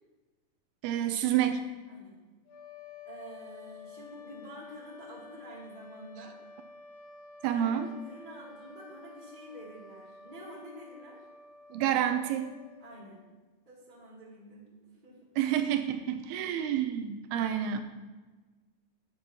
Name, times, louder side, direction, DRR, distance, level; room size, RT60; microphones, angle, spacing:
voice 1, 0.8-1.6 7.4-7.9 11.7-12.5 15.4-17.8, right 10 dB, 80° right, 8 dB, 2.5 m, -28 dB
sound 1, 2.5-13.4, left 4 dB, 60° left, 2.8 m, -51 dB
voice 2, 3.0-6.4 7.5-11.2 12.8-13.2 13.7-15.3, equal, 15° right, -6 dB, 1.9 m, -48 dB
11.0 x 10.5 x 2.9 m, 1.3 s
omnidirectional pair, 4.7 m